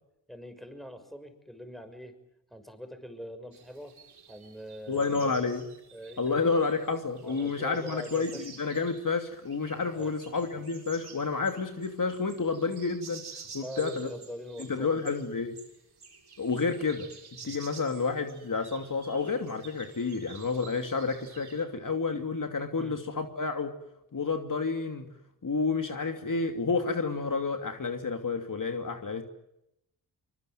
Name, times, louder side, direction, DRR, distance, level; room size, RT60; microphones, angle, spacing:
voice 1, 0.3-2.1 2.5-3.9 4.3-5.4 5.9-6.5 7.2-8.5 9.9-10.1 13.6-15.3 17.4-17.6 22.8-23.0, equal, ahead, 9 dB, 6.2 m, -43 dB
sound 1, 3.5-21.6, right 5 dB, 60° right, 6.4 m, -51 dB
voice 2, 4.9-5.6 6.2-13.2 13.5-14.1 14.6-15.6 16.4-17.1 17.4-23.7 24.1-25.1 25.4-29.2, left 4 dB, 45° left, 5 dB, 2.8 m, -30 dB
24.5 x 22.0 x 9.4 m, 0.83 s
supercardioid pair, 45°, 44 cm